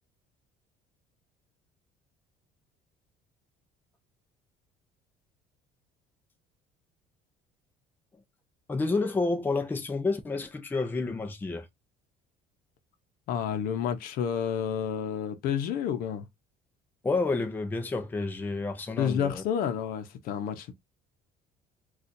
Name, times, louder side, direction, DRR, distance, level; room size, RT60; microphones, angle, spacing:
voice 1, 8.7-11.7 17.0-19.4, left 3 dB, 10° left, 0.5 m, -29 dB
voice 2, 13.3-16.3 19.0-20.7, left 8 dB, 65° left, 0.7 m, -30 dB
4.2 x 2.4 x 2.6 m
cardioid pair, 135°, 16 cm